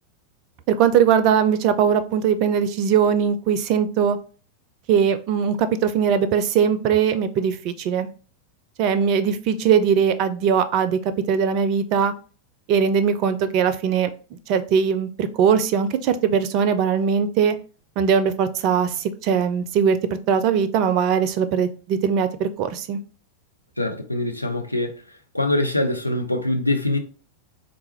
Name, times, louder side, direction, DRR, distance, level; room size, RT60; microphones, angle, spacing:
voice 1, 0.7-4.2 4.9-8.1 8.8-12.1 12.7-17.6 18.0-20.0 20.3-23.0, right 7 dB, 40° right, 0.4 m, -20 dB
voice 2, 23.8-25.0 25.3-27.0, left 1 dB, 85° left, 0.5 m, -23 dB
3.8 x 2.3 x 3.0 m
figure-of-eight pair, 90°, 0 cm